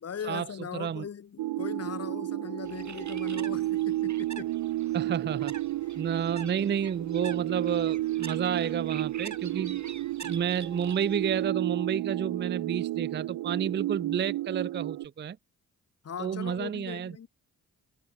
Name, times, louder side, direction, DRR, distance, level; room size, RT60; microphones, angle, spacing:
voice 1, 0.0-4.5 5.9-6.0 16.0-17.3, left 8 dB, 40° left, 0.8 m, -39 dB
voice 2, 0.7-1.1 4.9-5.5 6.0-9.8 10.2-15.4 16.2-17.1, right 8 dB, 30° right, 0.5 m, -30 dB
sound 1, 1.4-15.1, right 16 dB, 75° right, 0.7 m, -32 dB
Bird, 2.6-11.5, right 6 dB, 50° right, 1.9 m, -46 dB
supercardioid pair, 45°, 37 cm